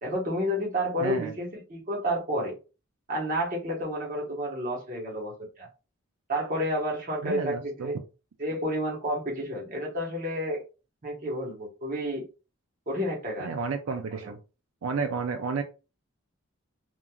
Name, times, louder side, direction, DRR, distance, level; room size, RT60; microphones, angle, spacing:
voice 1, 0.0-2.5 3.1-5.7 6.3-8.0 8.4-10.6 11.0-12.2 12.9-13.5 14.1-14.3, equal, 40° right, -2 dB, 1.0 m, -30 dB
voice 2, 1.0-1.3 7.2-7.9 13.4-14.4 14.8-15.6, right 5 dB, 85° right, 6 dB, 0.4 m, -31 dB
3.0 x 2.4 x 2.3 m, 0.31 s
head